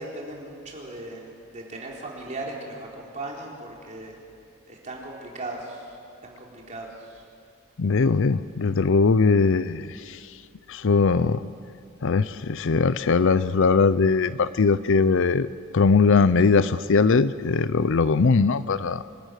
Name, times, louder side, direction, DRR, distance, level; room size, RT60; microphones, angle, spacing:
voice 1, 0.0-4.2 4.7-6.0 6.2-7.2, right 2 dB, 35° right, 3.8 m, -38 dB
voice 2, 7.8-9.9 10.7-11.4 12.0-15.5 15.7-19.0, left 4 dB, 60° left, 0.5 m, -20 dB
26.0 x 13.0 x 9.2 m
head